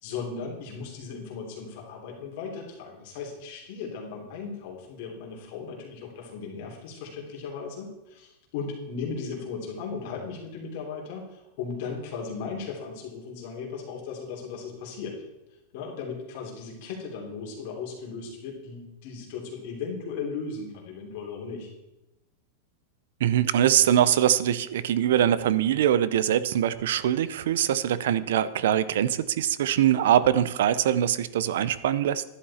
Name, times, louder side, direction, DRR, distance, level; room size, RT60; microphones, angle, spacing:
voice 1, 0.0-15.2 15.7-21.7, left 5 dB, 50° left, 0 dB, 3.1 m, -37 dB
voice 2, 23.2-32.2, right 10 dB, 75° right, 16 dB, 0.6 m, -23 dB
11.5 x 11.0 x 4.3 m, 0.95 s
supercardioid pair, 165°, 0 cm